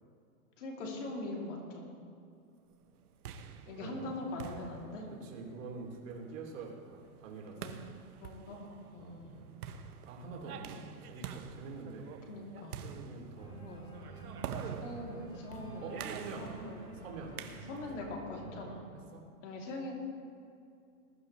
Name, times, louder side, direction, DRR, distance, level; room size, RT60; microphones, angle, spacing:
voice 1, 0.6-2.0 3.7-5.1 7.6-7.8 8.2-8.6 8.9-9.4 12.3-12.8 13.6-13.9 14.6-15.9 16.4-16.8 17.7-18.8 19.4-19.9, left 2 dB, 50° left, -1 dB, 3.1 m, -42 dB
sound 1, 2.9-18.1, right 7 dB, 75° right, 1.2 m, -47 dB
voice 2, 3.8-4.1 5.2-7.7 9.0-9.2 10.0-12.1 12.7-13.6 15.8-16.5 16.9-17.4 19.1-19.2, right 4 dB, 55° right, -1 dB, 2.9 m, -45 dB
Organ, 13.3-18.8, right 2 dB, 15° left, 2.2 m, -49 dB
20.0 x 12.0 x 3.3 m, 2.5 s
hypercardioid pair, 165°, 45 cm